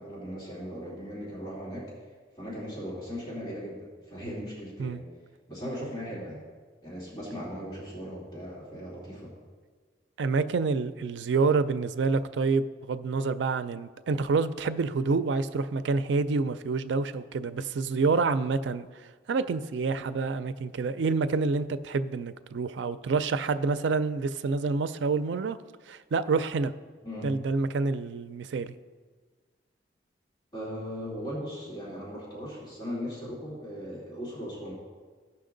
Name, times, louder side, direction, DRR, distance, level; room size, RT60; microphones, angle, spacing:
voice 1, 0.0-1.9 2.4-5.0 5.5-6.4 6.8-9.3 27.0-27.3 30.5-34.7, equal, 25° left, 2.8 m, -38 dB
voice 2, 10.2-25.6 25.9-26.7 27.2-28.7, right 4 dB, 85° right, 0.4 m, -28 dB
16.0 x 5.8 x 3.8 m
head